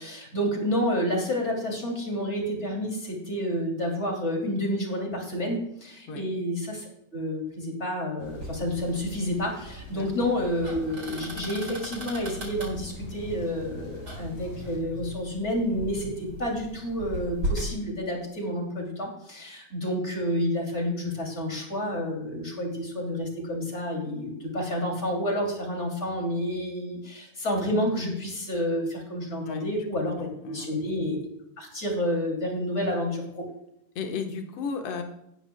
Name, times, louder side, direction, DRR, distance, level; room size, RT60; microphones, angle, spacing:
voice 1, 0.0-31.2 31.6-33.4, equal, 20° left, 0 dB, 2.7 m, -29 dB
sound 1, 8.2-14.8, left 2 dB, 80° left, 5.6 m, -46 dB
sound 2, 8.3-17.7, right 1 dB, 35° right, 5.2 m, -38 dB
voice 2, 34.0-35.0, left 5 dB, 55° left, 4 dB, 1.9 m, -34 dB
18.0 x 9.9 x 2.3 m, 0.80 s
omnidirectional pair, 3.9 m